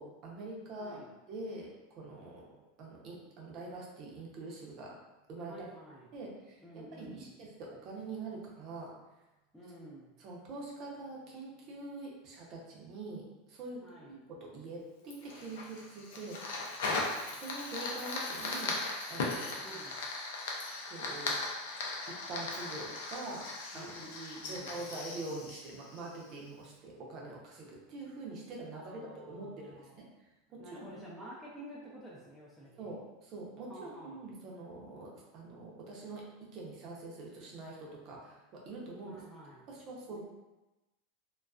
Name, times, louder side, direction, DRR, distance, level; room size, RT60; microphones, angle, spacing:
voice 1, 0.0-2.5 2.8-5.0 5.3-5.7 6.1-8.9 10.2-16.4 17.3-18.8 19.1-19.7 20.9-21.6 22.1-23.5 23.7-24.0 24.5-30.9 32.8-39.2 39.7-40.2, right 2 dB, 45° right, -3 dB, 0.7 m, -45 dB
voice 2, 0.8-1.1 5.5-6.1 6.6-7.3 9.5-10.2 13.8-14.1 19.6-20.0 23.7-24.8 28.7-30.0 30.6-32.9 33.7-34.2 39.1-39.6 40.1-40.2, right 1 dB, 5° left, -7 dB, 0.5 m, -50 dB
Fire, 15.1-26.5, left 3 dB, 75° left, 0.5 m, -38 dB
2.4 x 2.2 x 2.3 m, 1.0 s
supercardioid pair, 125°, 0 cm